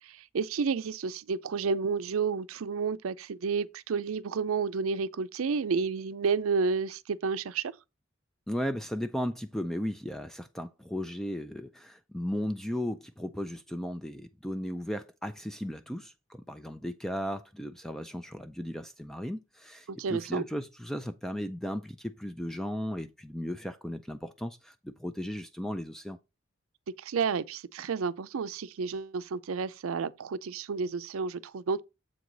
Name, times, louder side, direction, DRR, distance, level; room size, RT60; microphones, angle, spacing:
voice 1, 0.0-7.7 19.9-20.4 27.0-31.8, right 5 dB, 90° right, 0.5 m, -31 dB
voice 2, 8.5-26.2, equal, ahead, 0.3 m, -36 dB
7.4 x 4.7 x 3.9 m
head